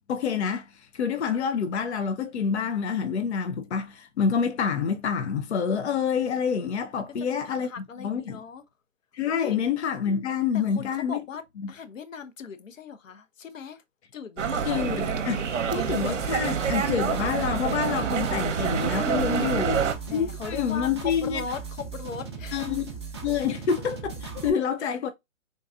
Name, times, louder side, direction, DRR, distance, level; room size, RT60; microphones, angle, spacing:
voice 1, 0.1-0.7 0.9-7.7 8.0-8.4 9.1-11.2 14.7-15.4 15.7-19.8 20.1-21.4 22.5-22.9 23.2-25.1, left 7 dB, 60° left, 0.6 m, -27 dB
voice 2, 6.9-8.6 9.3-9.6 10.5-11.4 11.7-13.8 14.1-14.9 19.4-19.7 20.1-22.7 24.8-24.9, left 6 dB, 80° left, 0.9 m, -39 dB
sound 1, 14.4-19.9, right 7 dB, 65° right, 0.8 m, -27 dB
sound 2, 15.8-24.5, right 5 dB, 20° right, 0.5 m, -38 dB
3.8 x 2.6 x 2.3 m
hypercardioid pair, 175°, 39 cm